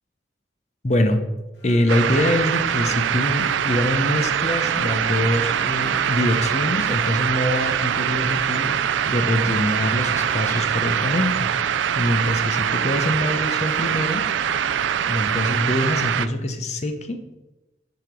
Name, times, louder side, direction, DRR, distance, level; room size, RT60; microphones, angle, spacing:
voice 1, 0.8-1.2 1.6-8.8 9.0-11.5 11.9-14.2 15.1-17.2, left 1 dB, 35° left, 6 dB, 0.7 m, -24 dB
sound 1, 1.5-15.3, left 1 dB, 60° left, 2.0 m, -46 dB
sound 2, 1.9-16.3, right 9 dB, 80° right, 0.4 m, -23 dB
sound 3, 4.6-12.0, right 2 dB, 20° right, 0.4 m, -42 dB
6.4 x 5.0 x 5.2 m, 1.0 s
head